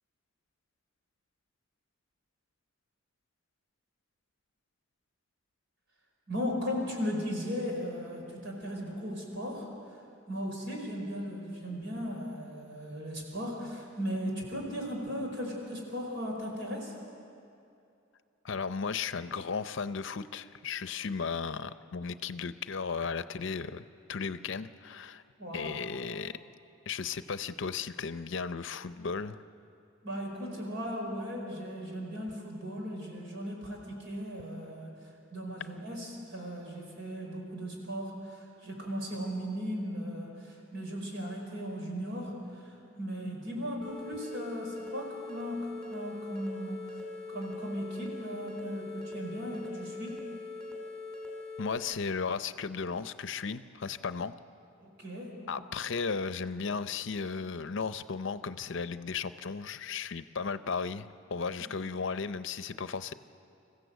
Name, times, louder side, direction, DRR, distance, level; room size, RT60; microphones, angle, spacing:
voice 1, 6.3-9.7 10.3-16.9 25.4-25.7 30.0-34.9 35.3-46.8 47.3-50.3 54.8-55.4 61.6-61.7, equal, 60° right, 0 dB, 5.2 m, -37 dB
voice 2, 18.4-25.2 25.5-26.4 26.9-29.4 51.6-54.3 55.5-63.1, left 5 dB, 65° left, 13 dB, 0.6 m, -35 dB
sound 1, 43.8-51.8, left 3 dB, 5° left, 3.1 m, -42 dB
26.0 x 15.0 x 8.0 m, 2.7 s
head